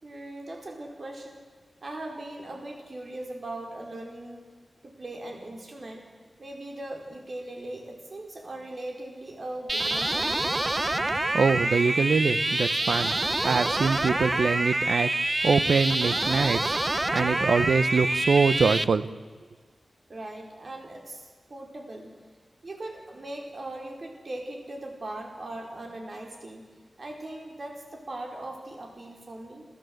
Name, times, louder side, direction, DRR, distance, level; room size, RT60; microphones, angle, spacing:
voice 1, 0.0-1.4 1.8-4.5 4.8-6.1 6.4-10.6 20.1-22.1 22.6-26.7 27.0-29.7, right 1 dB, 45° right, 1 dB, 4.9 m, -39 dB
sound 1, 9.7-18.8, right 2 dB, 20° right, 0.7 m, -26 dB
voice 2, 11.3-13.1 13.4-15.1 15.4-16.8 17.1-19.1, right 5 dB, 75° right, 13 dB, 1.0 m, -24 dB
28.5 x 14.5 x 8.0 m, 1.5 s
wide cardioid pair, 105°, 0 cm